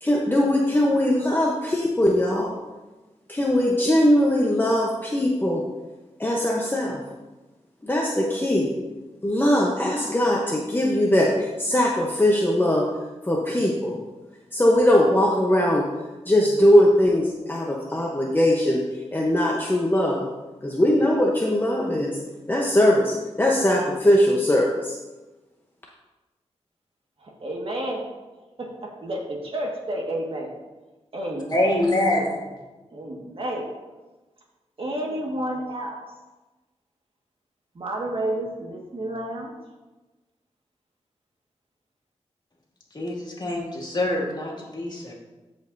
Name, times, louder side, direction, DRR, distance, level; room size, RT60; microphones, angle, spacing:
voice 1, 0.0-2.6 3.3-5.6 6.2-7.0 7.8-8.7 9.2-12.9 13.2-14.0 14.5-15.9 16.3-18.8 19.1-20.3 20.6-22.2 22.5-25.0, left 1 dB, 20° left, -2 dB, 0.9 m, -20 dB
voice 2, 27.2-28.0 28.6-28.7 29.0-30.5 31.1-31.8 32.2-32.3 32.9-33.7 34.8-36.0 37.7-39.5, right 1 dB, 55° right, -1 dB, 1.7 m, -30 dB
voice 3, 31.5-32.4 42.9-45.1, left 1 dB, 40° left, -3 dB, 2.2 m, -25 dB
14.5 x 5.3 x 2.7 m, 1.1 s
wide cardioid pair, 80°, 11 cm